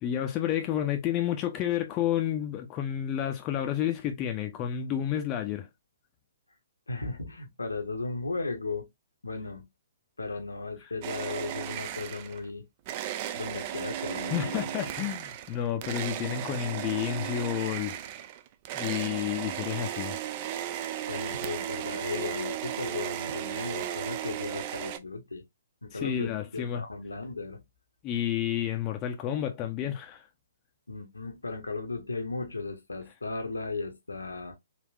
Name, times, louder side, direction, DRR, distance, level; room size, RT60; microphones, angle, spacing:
voice 1, 0.0-5.7 14.3-18.0 18.7-20.2 25.9-26.8 28.0-30.2, left 11 dB, 25° left, 0.5 m, -30 dB
voice 2, 6.9-8.9 9.2-9.6 10.2-12.7 13.3-14.7 21.1-25.4 25.8-27.6 30.9-34.6, left 3 dB, 75° left, 0.8 m, -36 dB
sound 1, 11.0-12.5 12.9-25.0, right 11 dB, 35° right, 0.3 m, -35 dB
3.5 x 2.4 x 2.3 m
figure-of-eight pair, 125°, 0 cm